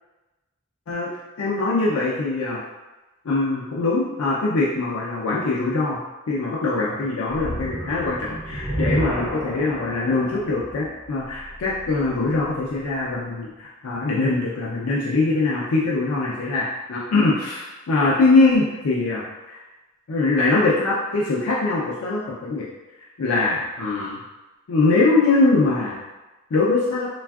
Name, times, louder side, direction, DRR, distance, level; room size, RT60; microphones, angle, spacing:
voice 1, 1.4-2.6 3.2-6.0 6.3-19.6 20.1-22.6 23.2-24.2 24.7-26.0 26.5-27.1, left 3 dB, 70° left, -5 dB, 0.4 m, -22 dB
sound 1, 7.3-12.6, right 1 dB, 5° left, 0.7 m, -31 dB
3.3 x 2.3 x 2.3 m, 1.1 s
head